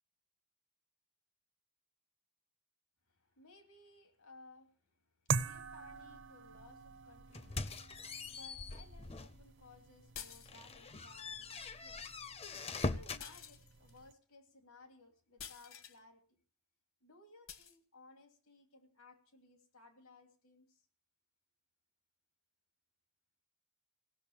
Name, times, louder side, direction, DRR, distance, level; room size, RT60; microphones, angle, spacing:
voice 1, 3.1-4.9 5.4-7.7 8.0-16.4 17.0-20.8, left 3 dB, 85° left, 6 dB, 2.9 m, -61 dB
sound 1, 5.3-14.1, right 4 dB, 55° right, 0.6 m, -44 dB
sound 2, 7.3-9.4 9.9-10.0 10.5-13.3, left 3 dB, 25° left, 0.6 m, -42 dB
sound 3, 10.1-10.9 13.2-14.0 15.4-16.0 17.5-17.8, left 8 dB, 65° left, 1.3 m, -50 dB
17.0 x 6.6 x 8.7 m, 0.41 s
head